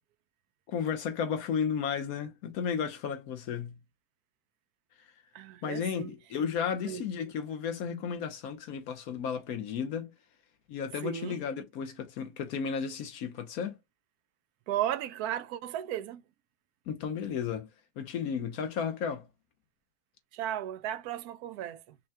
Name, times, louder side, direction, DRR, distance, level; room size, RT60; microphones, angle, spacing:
voice 1, 0.7-3.8 5.6-10.1 10.7-13.8 16.9-17.7 18.0-19.3, left 7 dB, 60° left, 1.1 m, -33 dB
voice 2, 5.3-6.1 6.8-7.0 11.0-11.4 14.7-16.2 20.3-22.0, right 11 dB, 70° right, 1.0 m, -35 dB
5.5 x 2.2 x 2.8 m
omnidirectional pair, 1.9 m